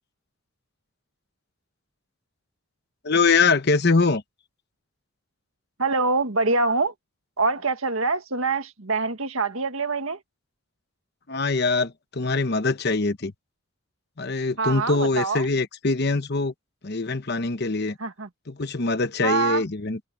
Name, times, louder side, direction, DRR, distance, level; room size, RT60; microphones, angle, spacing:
voice 1, 3.0-4.2 11.3-13.3 14.2-16.5 16.8-18.0 18.5-20.0, left 3 dB, 50° left, 1.0 m, -23 dB
voice 2, 5.8-6.9 7.4-10.2 14.6-15.5 18.0-18.3 19.2-19.6, right 3 dB, 80° right, 1.9 m, -25 dB
open air
head